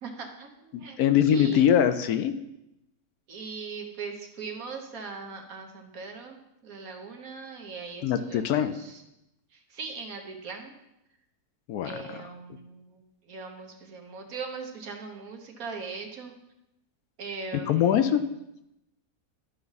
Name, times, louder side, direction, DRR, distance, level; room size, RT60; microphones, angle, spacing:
voice 1, 0.0-1.0 1.2-1.6 3.3-9.0 9.5-10.7 11.8-16.3 17.2-18.1, right 4 dB, 60° right, 3 dB, 1.5 m, -40 dB
voice 2, 0.7-2.3 8.0-8.7 11.7-12.2 17.7-18.2, left 9 dB, 75° left, 10 dB, 1.0 m, -23 dB
11.5 x 5.9 x 4.0 m, 0.88 s
omnidirectional pair, 1.7 m